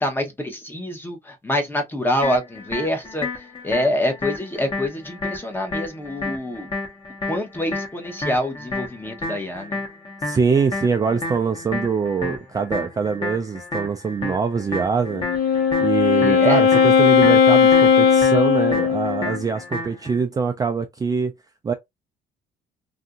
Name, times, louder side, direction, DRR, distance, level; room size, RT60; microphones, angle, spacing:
voice 1, 0.0-3.3 3.6-6.7 7.3-9.8 16.2-16.6, left 1 dB, 10° left, 0.8 m, -26 dB
sound 1, 2.2-20.2, left 2 dB, 30° left, 1.1 m, -32 dB
voice 2, 10.2-15.3 15.8-21.3 21.6-21.7, right 5 dB, 20° right, 0.3 m, -23 dB
Wind instrument woodwind instrument, 15.1-19.4, left 6 dB, 70° left, 0.5 m, -16 dB
2.7 x 2.5 x 2.3 m
cardioid pair, 110°, 17 cm